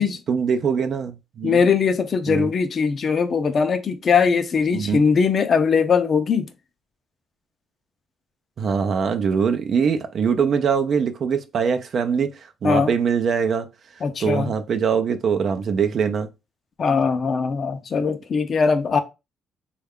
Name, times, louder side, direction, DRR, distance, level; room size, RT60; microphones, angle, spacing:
voice 1, 0.3-1.6 2.3-2.5 4.7-5.0 8.6-12.3 12.6-13.7 14.2-16.3, right 6 dB, 55° right, 0.5 m, -22 dB
voice 2, 1.4-6.5 12.6-12.9 14.0-14.5 16.8-19.0, left 5 dB, 50° left, 0.5 m, -20 dB
3.2 x 2.3 x 3.5 m
cardioid pair, 90°, 0 cm